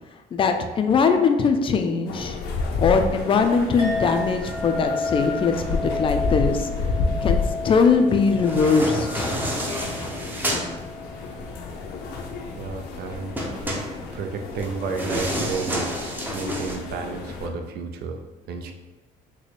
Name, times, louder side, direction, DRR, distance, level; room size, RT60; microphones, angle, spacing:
voice 1, 0.3-2.4 2.8-6.7 7.2-9.4, left 5 dB, 30° left, 6 dB, 0.4 m, -21 dB
sound 1, 2.1-17.5, left 4 dB, 85° left, 0.6 m, -31 dB
Chink clink, 3.8-12.5, left 3 dB, 30° right, 1.4 m, -33 dB
sound 2, 8.2-10.7 13.4-16.8, equal, 10° right, 0.6 m, -29 dB
voice 2, 12.6-13.3 13.6-13.8 14.1-18.2 18.5-18.7, right 5 dB, 70° right, 5 dB, 0.5 m, -32 dB
4.0 x 2.2 x 3.2 m, 1.2 s
cardioid pair, 110°, 17 cm